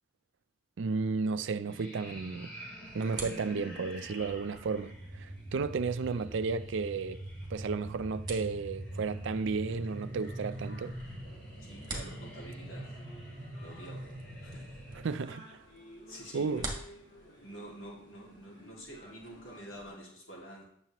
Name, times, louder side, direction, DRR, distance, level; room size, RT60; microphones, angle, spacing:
voice 1, 0.8-2.5 2.9-11.0 15.0-15.6 16.3-16.7, right 4 dB, 65° right, 0.4 m, -33 dB
sound 1, 1.7-15.2, right 1 dB, 10° left, 2.3 m, -43 dB
sound 2, 2.9-19.9, right 2 dB, 20° right, 1.6 m, -49 dB
sound 3, 8.9-19.9, left 1 dB, 50° left, 3.7 m, -56 dB
voice 2, 11.7-12.9 13.6-14.1 14.4-14.8 16.1-16.7 17.4-20.6, right 1 dB, 80° left, 2.2 m, -48 dB
9.0 x 6.7 x 2.9 m
head